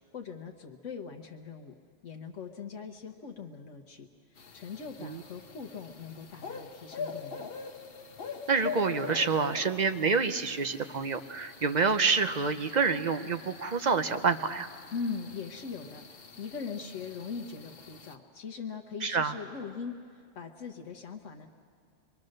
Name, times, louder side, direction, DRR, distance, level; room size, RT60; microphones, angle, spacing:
voice 1, 0.1-1.7 2.0-7.5 14.9-21.5, left 5 dB, 80° left, 2 dB, 1.3 m, -41 dB
sound 1, 4.4-18.2, left 5 dB, 50° left, 1.2 m, -44 dB
voice 2, 8.5-14.7 19.0-19.3, right 5 dB, 40° right, 9 dB, 0.8 m, -27 dB
25.5 x 23.0 x 6.5 m, 2.2 s
omnidirectional pair, 1.3 m